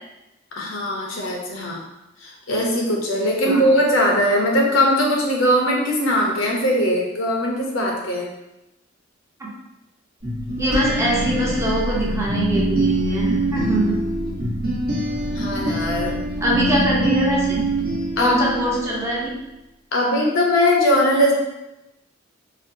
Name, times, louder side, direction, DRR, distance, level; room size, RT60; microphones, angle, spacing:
voice 1, 0.6-1.8 2.2-8.3 14.2-14.3 15.3-16.2 18.2-18.4 19.9-21.3, equal, 70° left, -1 dB, 0.7 m, -20 dB
sound 1, 10.2-18.9, right 1 dB, 50° right, 0.9 m, -24 dB
voice 2, 10.6-14.0 16.4-17.6 18.2-19.3, right 1 dB, 15° right, -5 dB, 0.6 m, -22 dB
4.3 x 2.0 x 2.6 m, 0.95 s
head